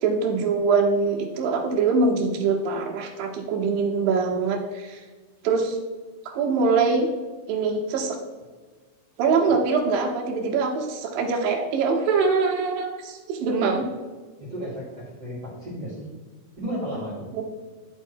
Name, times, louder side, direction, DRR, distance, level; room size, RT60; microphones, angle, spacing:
voice 1, 0.0-5.0 5.4-5.8 6.3-7.1 7.5-8.2 9.2-13.8 17.3-17.4, right 4 dB, 70° right, 1 dB, 2.7 m, -23 dB
voice 2, 14.4-16.1 16.6-17.2, equal, 30° right, -8 dB, 2.4 m, -33 dB
11.0 x 4.5 x 4.6 m, 1.4 s
omnidirectional pair, 4.5 m